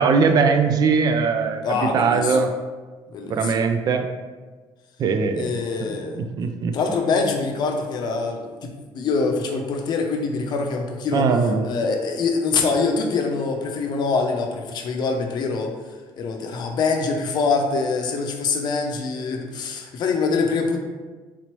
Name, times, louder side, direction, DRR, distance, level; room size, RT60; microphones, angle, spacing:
voice 1, 0.0-2.5 3.3-4.1 5.0-5.5 6.2-6.7 11.1-11.7, right 5 dB, 50° right, 7 dB, 0.3 m, -20 dB
voice 2, 1.6-2.4 3.1-3.5 5.3-6.3 6.7-11.3 11.6-15.7 16.2-20.8, left 4 dB, 55° left, 3 dB, 0.5 m, -24 dB
4.0 x 3.0 x 3.0 m, 1.3 s
cardioid pair, 125°, 9 cm